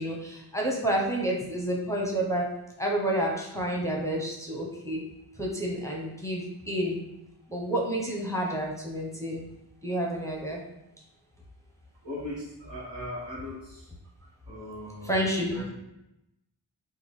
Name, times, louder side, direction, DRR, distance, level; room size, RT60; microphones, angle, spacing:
voice 1, 0.0-2.5 2.8-5.0 5.4-7.0 7.5-9.4 9.8-10.6 15.0-15.7, right 1 dB, 5° left, -2 dB, 0.6 m, -29 dB
voice 2, 12.0-13.9 14.5-15.7, left 1 dB, 70° right, -5 dB, 1.3 m, -39 dB
3.5 x 2.2 x 3.2 m, 0.86 s
cardioid pair, 50°, 44 cm